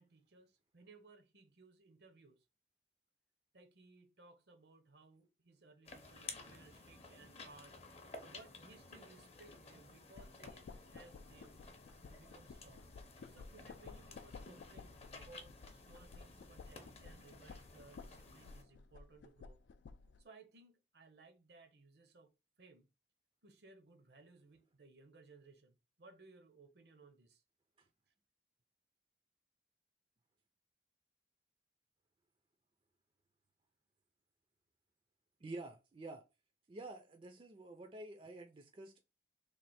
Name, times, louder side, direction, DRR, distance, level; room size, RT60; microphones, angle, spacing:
voice 1, 0.0-2.4 3.5-7.8 8.2-11.6 12.0-12.9 13.3-19.6 20.2-22.3 22.6-22.9 23.4-27.4, right 3 dB, 65° right, 0.7 m, -62 dB
sound 1, 5.8-18.6, left 3 dB, 35° left, 0.6 m, -54 dB
sound 2, 10.2-20.2, left 4 dB, 80° left, 0.3 m, -55 dB
voice 2, 35.4-36.2 36.7-39.0, right 2 dB, 30° right, 0.4 m, -49 dB
3.2 x 2.4 x 4.1 m
head